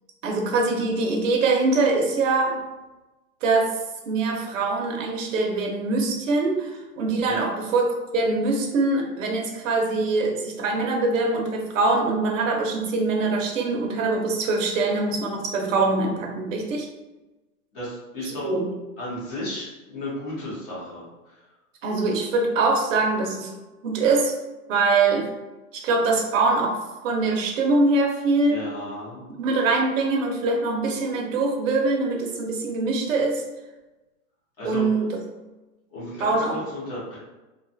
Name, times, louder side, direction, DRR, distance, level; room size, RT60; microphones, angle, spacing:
voice 1, 0.2-2.6 3.4-3.7 4.1-7.9 8.1-16.9 18.3-18.6 21.8-23.5 23.8-24.3 24.7-25.3 25.7-26.8 27.0-28.6 29.4-33.4 34.6-35.2 36.2-36.5, right 3 dB, 55° right, 1 dB, 0.7 m, -23 dB
voice 2, 17.7-18.5 19.0-21.4 28.5-29.3 34.6-34.9 35.9-37.2, left 1 dB, 15° left, -8 dB, 0.6 m, -34 dB
2.4 x 2.3 x 2.5 m, 1.1 s
hypercardioid pair, 145°, 48 cm